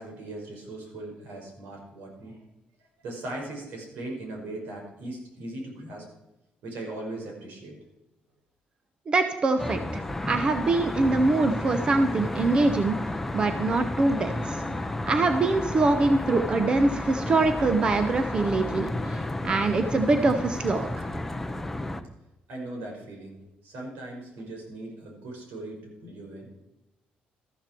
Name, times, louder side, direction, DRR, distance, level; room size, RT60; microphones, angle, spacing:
voice 1, 0.0-2.4 3.0-6.1 6.6-7.8 22.5-26.5, right 2 dB, 85° right, 0 dB, 5.3 m, -39 dB
voice 2, 9.1-13.0 13.3-14.6 15.1-21.1, right 3 dB, 30° right, 8 dB, 0.8 m, -24 dB
Traffic noise roadway noise, 9.6-22.0, left 1 dB, 5° left, 0.7 m, -32 dB
13.5 x 13.0 x 4.5 m, 0.95 s
cardioid pair, 165°, 3 cm